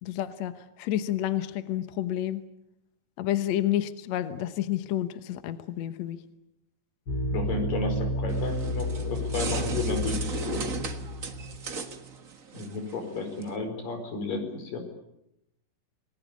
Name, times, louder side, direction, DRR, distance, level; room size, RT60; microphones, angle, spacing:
voice 1, 0.0-2.4 3.2-6.2, left 12 dB, 65° left, 11 dB, 2.1 m, -30 dB
sound 1, 7.1-12.1, equal, 30° left, 3.0 m, -31 dB
voice 2, 7.3-10.7 12.5-14.8, left 3 dB, 85° left, 6 dB, 6.1 m, -32 dB
sound 2, 8.3-13.6, right 4 dB, 45° right, 1.1 m, -37 dB
28.0 x 20.0 x 8.5 m, 0.85 s
omnidirectional pair, 3.8 m